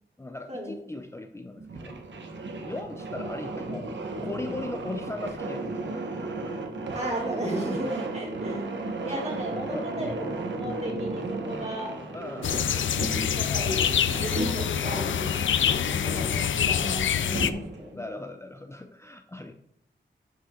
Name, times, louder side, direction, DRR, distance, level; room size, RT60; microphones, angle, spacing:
voice 1, 0.2-2.0 2.6-3.9 4.2-6.6 9.0-9.3 9.7-9.9 12.1-12.6 14.0-14.3 18.0-19.5, left 2 dB, 15° left, 5 dB, 0.5 m, -38 dB
sound 1, 1.6-17.9, right 2 dB, 75° right, 1.3 m, -35 dB
voice 2, 6.9-8.6 9.0-12.0 13.3-15.5 15.9-18.0, right 1 dB, 35° right, -2 dB, 3.2 m, -35 dB
sound 2, 12.4-17.5, left 9 dB, 90° left, 0.5 m, -26 dB
11.0 x 5.4 x 3.8 m, 0.77 s
wide cardioid pair, 110°, 19 cm